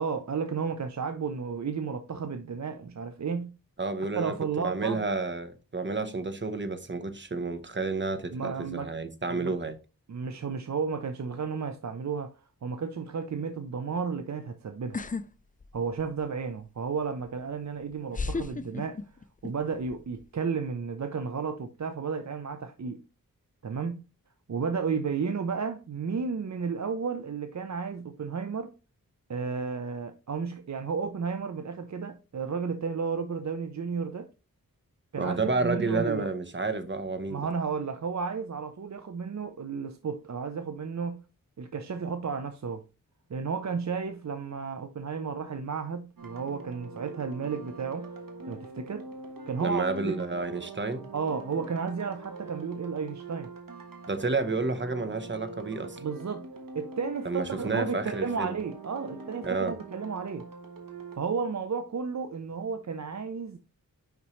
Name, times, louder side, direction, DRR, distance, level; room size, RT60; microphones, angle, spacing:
voice 1, 0.0-3.6 4.2-5.0 8.3-8.9 9.3-9.5 10.1-12.4 12.6-15.0 15.7-19.0 19.4-23.0 23.6-24.0 24.5-28.7 29.3-34.3 35.1-36.3 37.3-41.2 41.6-42.8 43.3-48.1 48.5-49.1 49.5-50.2 51.1-53.5 56.0-56.5 56.7-60.5 61.2-63.6, right 5 dB, 50° right, 0.6 m, -33 dB
voice 2, 3.8-4.4 4.6-9.8 35.2-37.5 49.6-51.1 54.1-56.0 57.2-58.6 59.4-59.8, right 3 dB, 30° right, 0.9 m, -30 dB
sound 1, 14.9-15.2 15.6-16.2 17.3-17.4 18.1-19.5 19.8-20.2, left 4 dB, 25° left, 0.4 m, -33 dB
sound 2, 46.2-61.2, right 2 dB, 70° right, 1.4 m, -44 dB
5.7 x 5.3 x 3.1 m
wide cardioid pair, 60°, 35 cm